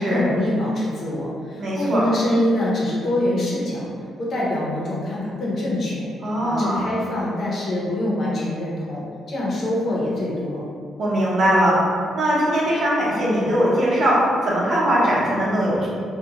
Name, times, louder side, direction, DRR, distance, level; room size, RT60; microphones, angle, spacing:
voice 1, 0.0-3.9 4.2-6.1 6.4-9.0 9.3-10.6, left 1 dB, 55° left, -5 dB, 0.7 m, -24 dB
voice 2, 1.6-2.1 6.2-6.8 11.0-11.8 12.1-15.9, equal, 55° right, -6 dB, 0.8 m, -20 dB
2.4 x 2.2 x 2.9 m, 2.2 s
cardioid pair, 85°, 0 cm